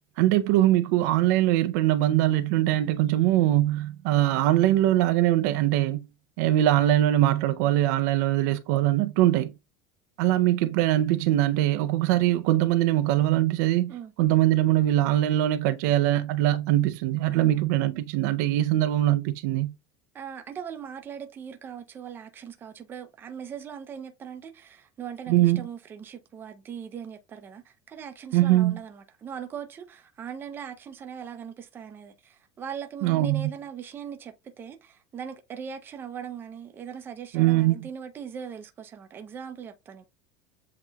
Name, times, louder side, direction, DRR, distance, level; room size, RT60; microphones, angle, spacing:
voice 1, 0.2-6.1 6.4-9.5 10.2-19.7 25.3-25.7 28.3-28.8 33.0-33.5 37.3-37.8, right 14 dB, 70° right, 0.5 m, -22 dB
voice 2, 17.3-17.7 20.1-40.1, right 7 dB, 20° right, 0.6 m, -40 dB
7.5 x 2.9 x 2.3 m
cardioid pair, 155°, 9 cm